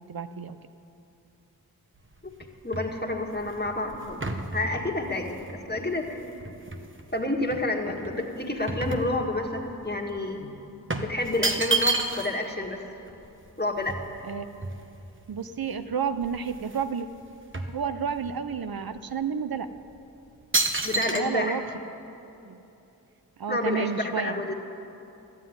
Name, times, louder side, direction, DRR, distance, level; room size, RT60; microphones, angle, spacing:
voice 1, 0.1-0.6 14.3-14.6 15.3-17.1 17.7-19.7 21.1-21.6 22.4-22.6 23.4-24.4, right 6 dB, 70° right, 10 dB, 0.6 m, -31 dB
sound 1, 2.0-7.1 7.5-9.7 10.0-10.2 10.9-12.5 12.8-12.9 13.1-15.2 15.8-15.9 16.1-16.9 17.2-18.4 19.0-19.1 19.8-20.0 20.5-21.2, right 3 dB, 30° right, 1.1 m, -31 dB
voice 2, 2.6-6.3 7.1-10.5 11.0-12.8 13.6-14.0 20.8-21.6 23.5-24.5, left 2 dB, 25° left, 1 dB, 1.7 m, -29 dB
13.0 x 9.8 x 9.4 m, 2.9 s
wide cardioid pair, 55°, 37 cm